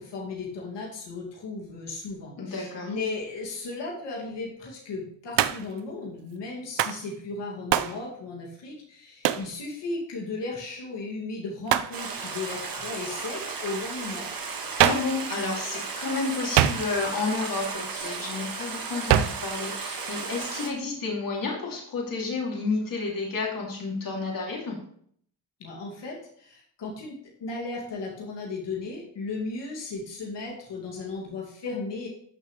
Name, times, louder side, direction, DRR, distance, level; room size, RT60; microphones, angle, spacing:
voice 1, 0.0-14.3 25.6-32.1, left 3 dB, 85° left, -3 dB, 2.6 m, -35 dB
voice 2, 2.4-2.9 14.8-24.8, left 3 dB, 50° left, -2 dB, 2.9 m, -31 dB
Hands, 5.4-5.8 6.8-7.0 7.7-8.0 9.2-9.5 11.7-12.0 14.8-15.2 16.6-17.1 19.1-19.5, right 11 dB, 85° right, 0.6 m, -23 dB
Stream, 11.9-20.7, right 4 dB, 55° right, 1.8 m, -35 dB
13.0 x 6.6 x 3.3 m, 0.64 s
cardioid pair, 120°, 41 cm